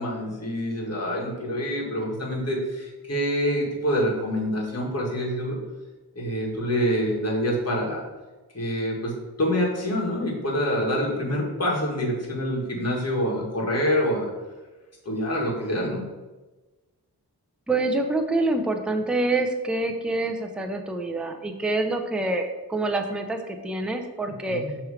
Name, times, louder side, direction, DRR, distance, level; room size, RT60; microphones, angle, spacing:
voice 1, 0.0-5.6 6.2-8.0 8.5-9.1 9.4-14.3 15.1-16.0 24.5-24.8, equal, 40° left, -3 dB, 1.7 m, -26 dB
voice 2, 17.7-24.6, right 2 dB, ahead, 5 dB, 0.5 m, -26 dB
6.0 x 3.2 x 4.8 m, 1.2 s
wide cardioid pair, 90°, 39 cm